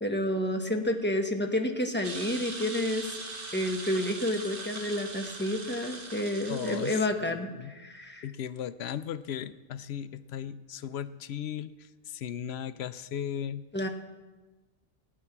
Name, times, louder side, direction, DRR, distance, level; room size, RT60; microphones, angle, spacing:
voice 1, 0.0-3.1 3.5-8.2 13.7-13.9, left 1 dB, 10° left, 3 dB, 1.1 m, -30 dB
sound 1, 2.0-7.0, right 3 dB, 60° right, 1.4 m, -40 dB
voice 2, 6.5-7.7 8.2-13.6, left 9 dB, 85° left, 14 dB, 0.8 m, -37 dB
16.0 x 8.8 x 6.0 m, 1.2 s
omnidirectional pair, 1.1 m